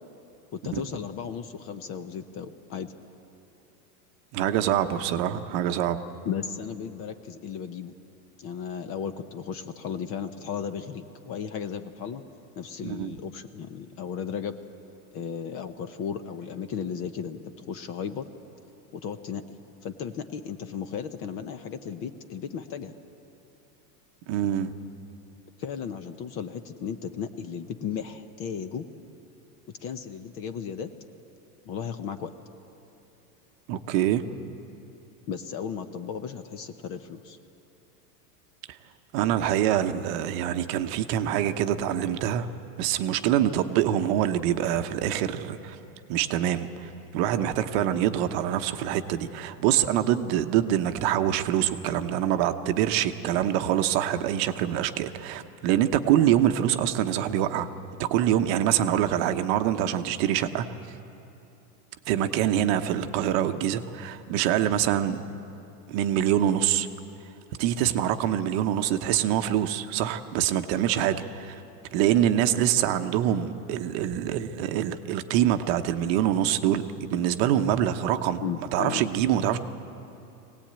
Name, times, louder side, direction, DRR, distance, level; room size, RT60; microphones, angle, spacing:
voice 1, 0.5-2.9 6.2-7.9 8.4-12.2 12.6-14.5 15.1-18.3 18.9-19.6 19.8-22.9 25.6-28.8 29.8-30.9 31.7-32.3 35.3-37.4 78.4-79.0, left 7 dB, 30° left, 10 dB, 0.7 m, -35 dB
voice 2, 4.3-6.0 12.8-13.2 24.3-24.7 33.7-34.2 39.1-42.5 42.8-45.8 46.1-57.7 58.0-60.7 62.1-65.2 65.9-66.9 67.6-71.6 71.9-78.4 78.7-79.6, right 11 dB, 40° right, 8 dB, 0.9 m, -25 dB
22.0 x 18.0 x 8.8 m, 2.8 s
supercardioid pair, 150°, 46 cm